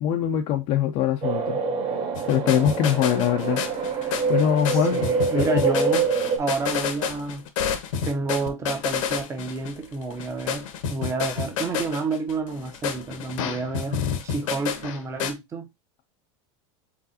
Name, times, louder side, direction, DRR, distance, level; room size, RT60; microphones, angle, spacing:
voice 1, 0.0-1.6 2.3-5.0 5.3-5.7, left 10 dB, 40° left, 0.5 m, -23 dB
sound 1, 1.2-6.4, right 5 dB, 35° right, 1.3 m, -26 dB
sound 2, 2.1-15.3, left 7 dB, 80° left, 1.1 m, -29 dB
voice 2, 4.7-6.1 6.4-7.5 8.0-15.7, right 3 dB, 20° right, 0.7 m, -29 dB
4.8 x 3.7 x 2.7 m
supercardioid pair, 155°, 16 cm